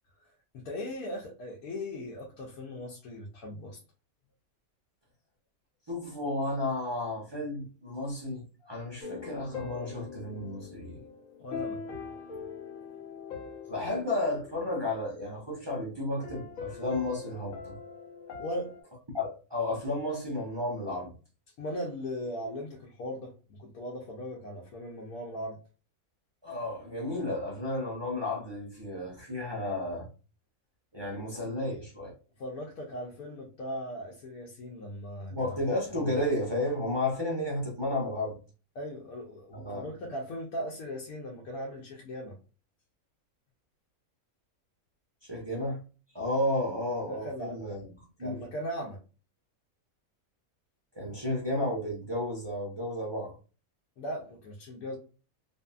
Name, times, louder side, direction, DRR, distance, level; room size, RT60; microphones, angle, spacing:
voice 1, 0.5-3.8 11.4-11.8 18.4-18.7 21.6-25.6 32.4-35.7 38.8-42.4 47.1-47.7 48.2-49.0 54.0-55.0, equal, 90° left, 1.2 m, -38 dB
voice 2, 5.9-11.1 13.7-17.8 19.1-21.1 26.4-30.1 30.9-32.1 35.3-38.4 39.5-39.9 45.2-45.8 46.1-47.9 48.2-48.4 51.0-53.4, left 1 dB, 40° right, 0.3 m, -32 dB
sound 1, 9.0-15.6 16.2-18.8, left 5 dB, 70° left, 1.1 m, -42 dB
2.6 x 2.6 x 2.2 m
omnidirectional pair, 1.5 m